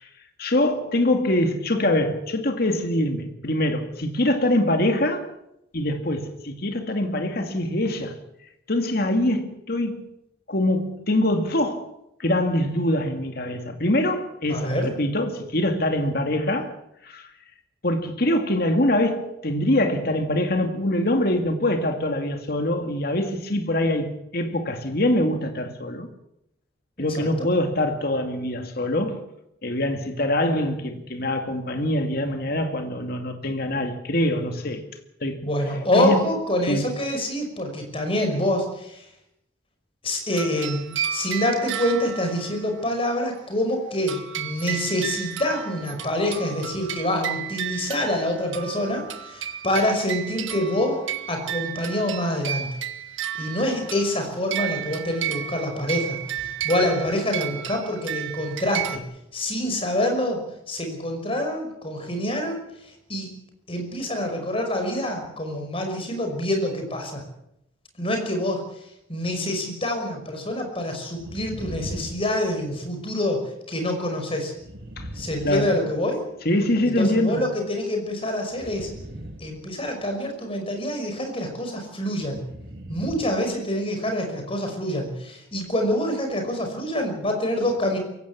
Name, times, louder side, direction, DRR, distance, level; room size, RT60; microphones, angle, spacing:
voice 1, 0.4-5.3 5.7-8.2 8.7-10.1 10.5-11.9 12.2-16.8 17.0-17.3 17.8-26.1 27.0-29.2 29.6-34.8 35.2-35.5 36.0-36.3 36.7-36.9 75.0-75.1 75.4-75.7 76.4-77.4, left 1 dB, 50° left, 2.3 m, -24 dB
voice 2, 14.5-14.9 27.0-27.5 35.4-39.1 40.0-52.7 53.3-59.0 59.3-63.3 63.7-67.2 68.0-68.8 69.1-74.5 75.1-76.2 76.8-78.9 79.4-82.4 82.9-88.0, left 1 dB, 30° left, 5.7 m, -26 dB
sound 1, 40.3-42.8 44.1-59.0, right 10 dB, 80° right, 1.6 m, -33 dB
sound 2, 71.1-73.0 74.5-76.4 78.5-80.2 82.2-83.5 83.8-83.9, equal, 55° right, 2.5 m, -40 dB
23.0 x 16.5 x 8.4 m
head